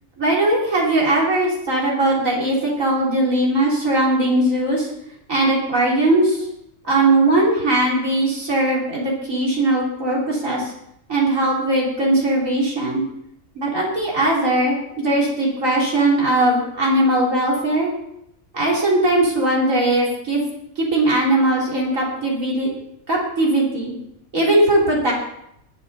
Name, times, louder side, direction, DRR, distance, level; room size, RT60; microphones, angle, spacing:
voice 1, 0.2-4.9 5.3-6.4 6.9-10.6 11.1-13.0 13.6-17.9 18.5-20.4 20.8-22.7 23.1-23.9 24.3-25.1, right 1 dB, 65° right, -4 dB, 3.9 m, -19 dB
20.0 x 9.6 x 4.2 m, 0.77 s
omnidirectional pair, 1.5 m